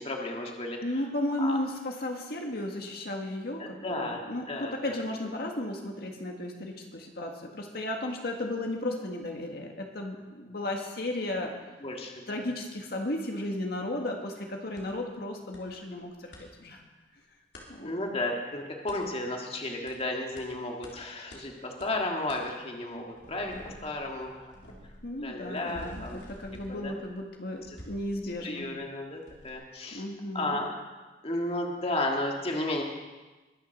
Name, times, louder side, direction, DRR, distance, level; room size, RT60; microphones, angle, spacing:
voice 1, 0.0-0.8 1.4-1.6 3.6-4.2 4.5-5.0 11.8-12.4 17.8-24.5 25.2-26.2 26.7-26.9 27.7-27.8 28.4-30.0 30.3-30.7 31.2-32.8, left 2 dB, 35° left, 1 dB, 1.8 m, -33 dB
voice 2, 0.8-11.5 12.3-16.8 17.7-17.9 25.0-28.7 29.9-30.6, left 1 dB, 60° left, 1 dB, 1.8 m, -34 dB
sound 1, 14.8-14.9 15.5-15.6 15.9-16.4 17.5-17.7 18.9-19.0 19.9-20.0 20.4-20.5 20.8-20.9 21.3-21.4 21.8-21.9 22.3-22.4 22.9-28.9 29.3-29.5, left 1 dB, 75° left, 3.4 m, -49 dB
22.0 x 7.4 x 6.5 m, 1.2 s
head